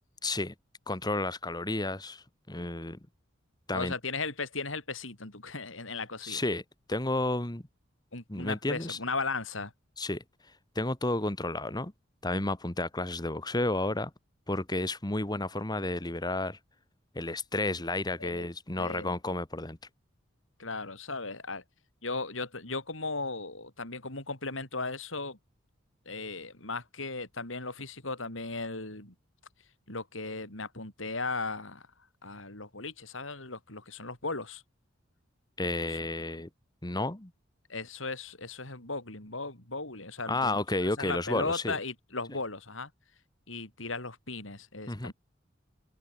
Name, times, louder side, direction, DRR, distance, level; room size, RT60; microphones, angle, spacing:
voice 1, 0.2-0.5 0.9-3.0 3.7-3.9 6.2-6.6 6.9-7.6 8.3-9.0 10.0-10.2 10.8-11.9 12.2-14.1 14.5-16.6 17.2-19.8 35.6-36.5 36.8-37.3 40.3-41.7 44.9-45.1, left 2 dB, 20° left, 1.8 m, -31 dB
voice 2, 3.7-6.4 8.1-9.7 18.2-18.5 18.8-19.2 20.6-21.6 22.0-25.4 26.1-29.1 29.9-31.9 32.2-34.6 35.9-36.0 37.7-42.9 43.5-45.1, left 3 dB, 85° left, 6.3 m, -37 dB
open air
head